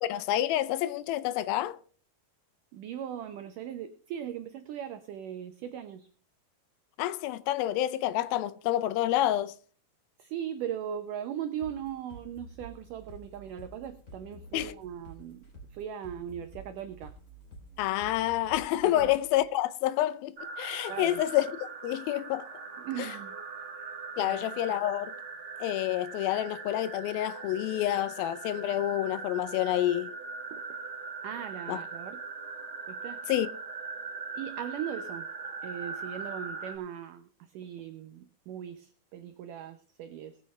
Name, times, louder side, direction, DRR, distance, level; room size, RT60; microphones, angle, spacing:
voice 1, 0.0-1.8 7.0-9.6 14.5-14.7 17.8-21.5 21.8-22.5 24.2-25.1 25.6-30.1 31.7-31.8 33.3-33.5, left 13 dB, 80° left, 2.2 m, -28 dB
voice 2, 2.7-6.1 10.2-15.5 15.7-17.1 18.9-19.1 20.9-21.2 22.8-23.4 24.2-24.5 30.5-30.8 31.2-32.2 32.9-33.2 34.4-35.3 35.6-40.4, right 9 dB, 85° right, 1.8 m, -39 dB
sound 1, 11.6-19.4, right 1 dB, 25° left, 3.1 m, -49 dB
sound 2, 20.4-36.8, right 4 dB, 40° right, 2.1 m, -41 dB
19.5 x 9.4 x 3.2 m
omnidirectional pair, 4.8 m